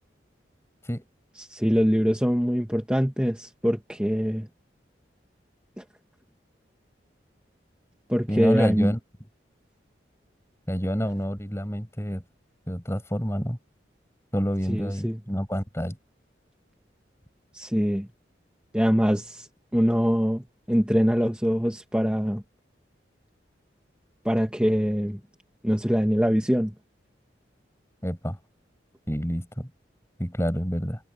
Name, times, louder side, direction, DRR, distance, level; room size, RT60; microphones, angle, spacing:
voice 1, 1.4-4.5 5.8-5.9 8.1-8.9 14.7-15.2 17.5-18.1 18.7-19.5 19.7-22.4 24.2-25.2 25.6-26.7, equal, 5° right, 1.4 m, -23 dB
voice 2, 8.3-9.0 10.7-12.2 12.7-13.6 14.3-16.0 28.0-28.4 29.1-29.7 30.2-31.0, equal, 15° left, 7.7 m, -28 dB
head